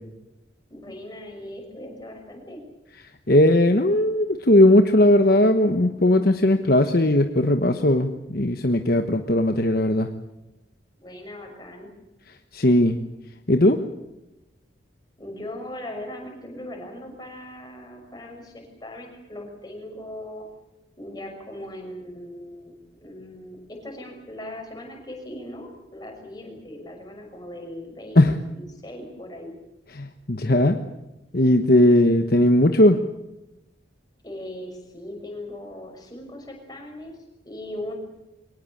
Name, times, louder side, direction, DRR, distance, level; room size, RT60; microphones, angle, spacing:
voice 1, 0.7-2.6 11.0-11.9 15.2-20.5 21.0-22.7 23.0-29.6 34.2-37.1 37.4-37.9, left 1 dB, 20° left, 2 dB, 6.2 m, -39 dB
voice 2, 3.3-10.1 12.5-13.0 13.5-13.8 28.2-28.3 30.0-30.8 31.3-33.0, left 1 dB, 50° left, 6 dB, 1.2 m, -18 dB
23.5 x 18.5 x 8.6 m, 0.98 s
head